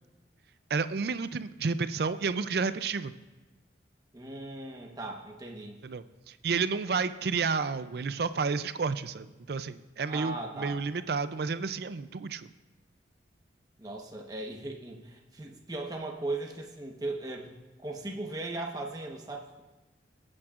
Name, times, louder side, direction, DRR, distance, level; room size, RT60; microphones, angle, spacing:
voice 1, 0.7-3.1 5.8-12.5, right 5 dB, 55° right, 13 dB, 0.4 m, -31 dB
voice 2, 4.1-5.8 10.0-10.8 13.8-19.6, right 2 dB, 20° right, 1 dB, 1.1 m, -38 dB
22.0 x 8.6 x 2.5 m, 1.2 s
head